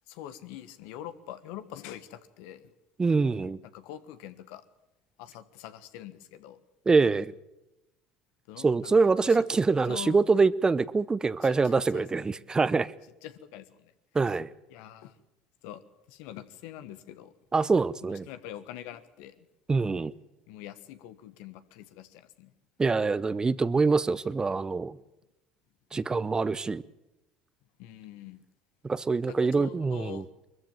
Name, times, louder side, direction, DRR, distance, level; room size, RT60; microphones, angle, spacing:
voice 1, 0.1-2.7 3.6-4.6 5.2-6.6 8.5-9.4 9.8-10.2 11.4-12.3 13.2-13.9 14.7-15.2 15.6-15.8 16.1-17.3 18.0-19.5 19.9-20.0 20.5-22.5 27.8-28.4 29.3-30.3, left 12 dB, 75° left, 1.3 m, -44 dB
voice 2, 3.0-3.6 6.9-7.3 8.6-12.9 14.1-14.5 17.5-18.3 19.7-20.1 22.8-25.0 25.9-26.8 28.9-30.2, right 4 dB, 20° right, 0.7 m, -25 dB
21.0 x 14.5 x 9.1 m
hypercardioid pair, 80°, 3 cm